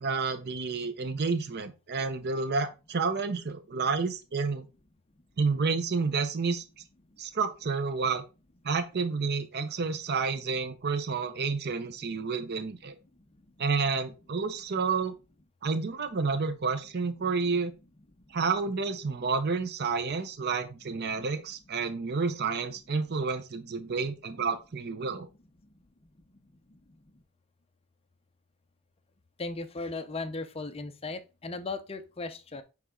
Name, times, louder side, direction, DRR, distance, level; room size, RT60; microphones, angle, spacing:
voice 1, 0.0-4.7 5.4-6.6 7.2-8.2 8.6-13.0 13.6-15.1 15.6-17.7 18.3-25.3, right 4 dB, 45° right, 0.6 m, -30 dB
voice 2, 29.4-32.6, left 3 dB, 25° left, 0.5 m, -36 dB
8.1 x 3.4 x 3.6 m
head